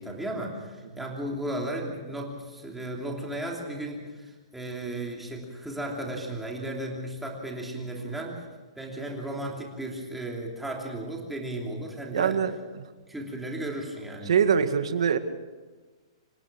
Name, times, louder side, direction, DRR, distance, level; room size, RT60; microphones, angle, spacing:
voice 1, 0.0-8.4 8.8-12.4 13.1-14.3, right 1 dB, 5° right, -1 dB, 3.0 m, -35 dB
voice 2, 12.1-12.5 14.3-15.2, right 7 dB, 75° right, 9 dB, 2.0 m, -23 dB
27.0 x 16.5 x 6.2 m, 1.3 s
hypercardioid pair, 175°, 3 cm